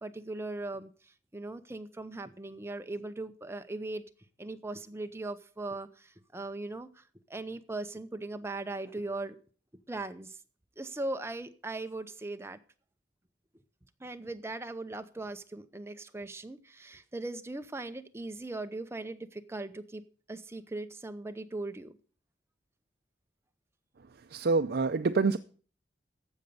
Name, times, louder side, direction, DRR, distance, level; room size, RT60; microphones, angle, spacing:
voice 1, 0.0-4.0 4.4-7.0 7.3-9.4 9.9-10.4 10.8-12.6 14.0-20.0 20.3-22.0, right 2 dB, 15° right, 9 dB, 0.7 m, -39 dB
voice 2, 24.3-25.4, right 4 dB, 60° right, 8 dB, 0.5 m, -26 dB
14.5 x 5.3 x 6.8 m, 0.42 s
head